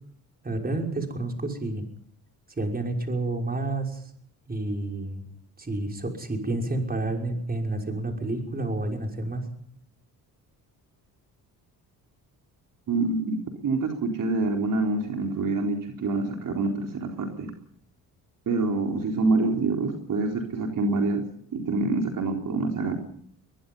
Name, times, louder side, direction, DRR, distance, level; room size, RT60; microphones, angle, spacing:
voice 1, 0.4-1.8 2.6-4.1 4.5-5.2 5.6-9.4, right 2 dB, 25° right, 2 dB, 5.8 m, -29 dB
voice 2, 12.9-13.4 13.6-17.5 18.5-21.2 21.5-23.0, right 3 dB, 55° right, 2 dB, 4.0 m, -26 dB
22.5 x 21.5 x 5.6 m, 0.65 s
cardioid pair, 95°, 38 cm